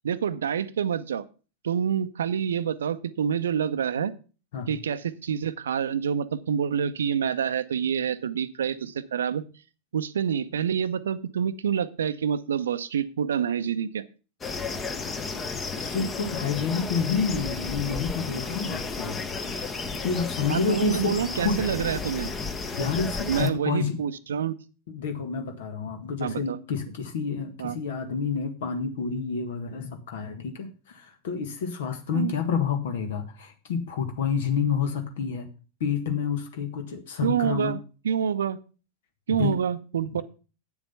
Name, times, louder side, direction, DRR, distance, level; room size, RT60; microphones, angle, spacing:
voice 1, 0.0-1.2 1.6-4.1 4.7-9.5 9.9-14.0 20.5-22.3 23.3-24.5 26.2-26.6 27.6-27.8 32.1-32.3 37.2-37.8 38.0-38.6 39.3-40.2, right 8 dB, 65° right, 14 dB, 0.7 m, -27 dB
sound 1, 14.4-23.5, left 4 dB, 20° left, 1.1 m, -33 dB
voice 2, 15.8-19.2 20.0-21.6 22.7-24.0 24.9-35.5 35.8-37.7 39.4-39.6 40.1-40.2, left 6 dB, 55° left, 7 dB, 1.7 m, -29 dB
8.5 x 7.1 x 5.7 m, 0.36 s
figure-of-eight pair, 90°, 0 cm